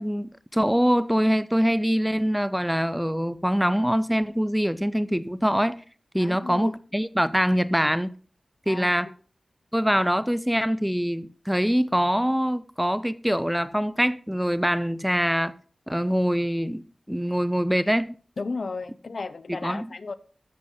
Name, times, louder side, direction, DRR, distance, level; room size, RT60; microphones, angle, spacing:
voice 1, 0.0-5.8 6.1-8.1 8.7-9.1 9.7-15.5 15.9-16.8 17.1-18.1 19.6-19.9, equal, 5° right, 0.5 m, -24 dB
voice 2, 6.2-6.7 8.7-9.1 18.4-20.1, left 3 dB, 70° left, 0.6 m, -34 dB
13.5 x 5.3 x 4.2 m
wide cardioid pair, 90°, 0 cm